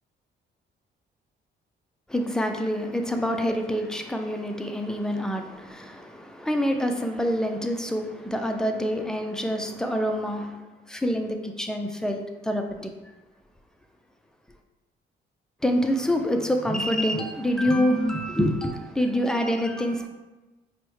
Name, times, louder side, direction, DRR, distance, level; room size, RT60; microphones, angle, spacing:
voice 1, 2.1-10.6 10.9-12.9 15.6-20.1, equal, 5° left, 4 dB, 0.3 m, -26 dB
4.5 x 2.1 x 3.1 m, 1.2 s
cardioid pair, 90°, 20 cm